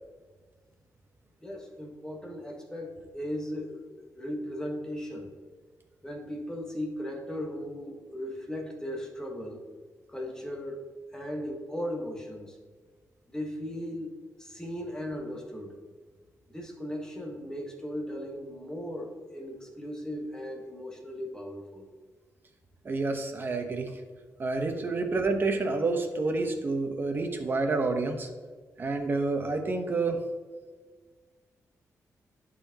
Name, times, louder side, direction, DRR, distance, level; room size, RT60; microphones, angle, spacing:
voice 1, 1.4-3.8 4.2-5.3 6.0-9.6 10.1-10.8 11.1-12.5 13.3-15.7 16.5-21.9, equal, 10° left, 0 dB, 1.3 m, -37 dB
voice 2, 22.8-24.0 24.4-28.3 28.8-30.2, right 3 dB, 35° right, 5 dB, 1.0 m, -29 dB
11.0 x 4.2 x 2.9 m, 1.4 s
cardioid pair, 115°, 6 cm